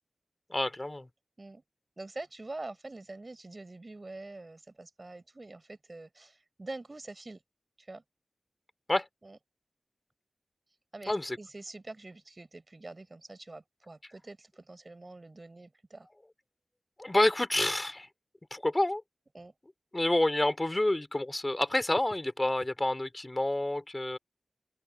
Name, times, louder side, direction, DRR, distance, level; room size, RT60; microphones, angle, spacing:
voice 1, 0.5-1.1 8.9-9.1 11.1-11.4 17.0-18.1 18.5-19.0 19.9-24.2, left 1 dB, 30° left, 3.7 m, -28 dB
voice 2, 2.0-7.4 7.8-8.0 9.2-9.4 10.9-16.1 19.3-19.5, right 2 dB, 45° right, 7.1 m, -45 dB
wide cardioid pair, 50°, 0 cm